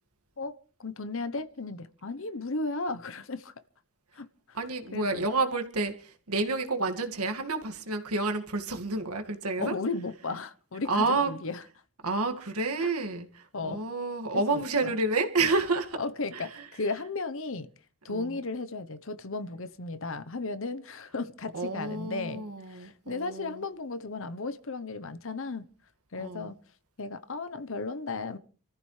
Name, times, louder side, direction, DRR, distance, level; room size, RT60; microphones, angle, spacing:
voice 1, 0.4-3.5 4.1-4.6 4.9-5.2 9.6-11.6 12.8-12.9 13.5-13.8 14.3-14.9 16.0-17.7 18.0-25.7 26.1-26.6 27.0-28.4, left 3 dB, 60° left, 1.0 m, -35 dB
voice 2, 4.5-9.7 10.9-11.3 12.0-16.0 16.3-16.7 18.1-18.4 21.5-23.6 26.2-26.5, right 3 dB, 90° right, 2.1 m, -30 dB
27.5 x 14.0 x 3.3 m
head